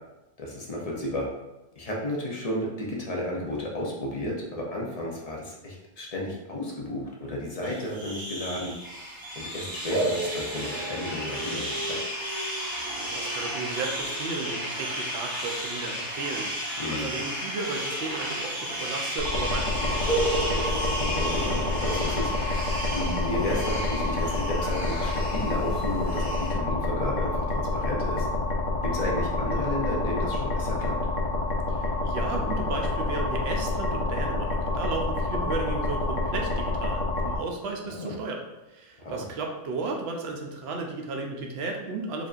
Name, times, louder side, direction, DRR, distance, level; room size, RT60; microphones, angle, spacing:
voice 1, 0.4-1.3 1.8-8.7 9.4-12.0 16.8-17.1 20.9-28.3 28.8-31.0 37.8-38.1 39.0-39.2, left 1 dB, 45° left, -3 dB, 0.5 m, -33 dB
sound 1, 7.6-26.5, equal, 30° right, 0.4 m, -34 dB
sound 2, 9.9-15.3 17.6-19.0 19.3-19.4 20.0-22.2, right 2 dB, 85° left, 1.5 m, -34 dB
voice 2, 13.1-20.6 31.7-38.4 38.7-42.3, right 3 dB, 60° right, 2 dB, 0.7 m, -34 dB
sound 3, 19.2-37.4, left 2 dB, 65° left, 1.0 m, -28 dB
5.0 x 2.6 x 2.4 m, 0.98 s
omnidirectional pair, 1.5 m